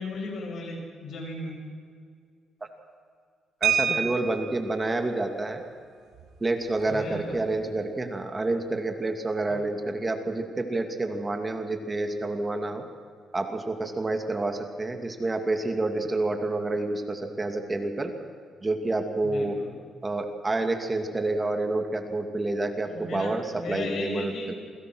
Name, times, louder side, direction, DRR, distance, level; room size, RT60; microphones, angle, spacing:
voice 1, 0.0-1.6 6.9-7.5 9.5-9.6 19.2-19.7 22.9-24.6, left 2 dB, 65° left, 2 dB, 6.9 m, -36 dB
voice 2, 3.6-5.6 6.4-12.8 13.3-18.1 18.6-19.6 20.0-24.5, right 2 dB, 25° right, 5 dB, 2.5 m, -28 dB
sound 1, 3.6-4.7 6.1-6.3 6.6-6.8 7.2-7.5, right 7 dB, 80° right, 2.8 m, -27 dB
28.0 x 22.0 x 6.3 m, 2.1 s
cardioid pair, 90°, 0 cm